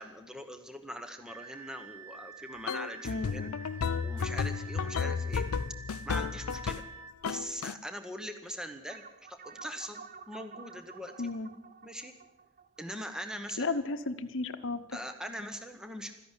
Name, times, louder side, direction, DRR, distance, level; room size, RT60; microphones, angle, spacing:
voice 1, 0.0-3.5 4.0-5.5 6.1-6.8 7.3-9.0 9.3-11.1 11.8-12.1 12.8-13.8 14.9-16.1, equal, 5° right, 7 dB, 0.9 m, -41 dB
sound 1, 1.3-7.1, right 5 dB, 85° right, 1.1 m, -48 dB
sound 2, 2.7-6.9 7.2-7.7, left 6 dB, 90° left, 0.5 m, -33 dB
voice 2, 3.0-3.5 11.2-11.5 13.6-15.0, left 3 dB, 60° left, 9 dB, 1.0 m, -34 dB
sound 3, 8.9-13.7, right 5 dB, 40° right, 0.6 m, -51 dB
14.0 x 11.0 x 8.1 m, 0.90 s
head